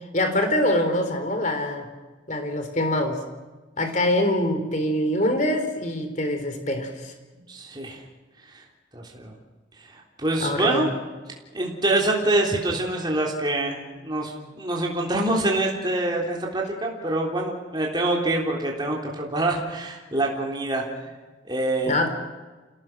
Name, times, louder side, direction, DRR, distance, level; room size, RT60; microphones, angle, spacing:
voice 1, 0.1-1.9 2.3-3.2 3.8-7.4 10.4-10.9 21.9-22.1, left 1 dB, 40° left, 7 dB, 3.6 m, -24 dB
voice 2, 7.5-8.0 8.5-8.6 8.9-9.3 9.9-10.9 11.5-20.8 21.5-22.0, right 2 dB, 20° right, -1 dB, 3.6 m, -25 dB
28.5 x 17.5 x 6.2 m, 1.3 s
head